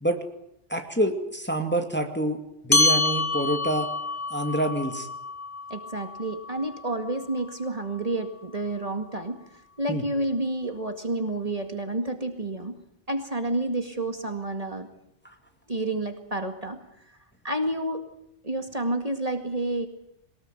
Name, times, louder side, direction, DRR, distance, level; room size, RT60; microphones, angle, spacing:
voice 1, 0.7-3.9 4.3-5.1 9.9-10.0, right 1 dB, 10° left, 5 dB, 2.3 m, -27 dB
sound 1, 2.7-7.5, left 2 dB, 45° left, 2.3 m, -27 dB
voice 2, 5.7-9.4 9.8-12.8 13.1-14.9 15.7-16.8 17.4-18.0 18.4-19.9, right 2 dB, 30° right, 6 dB, 2.2 m, -29 dB
22.5 x 20.0 x 9.1 m, 0.79 s
omnidirectional pair, 1.2 m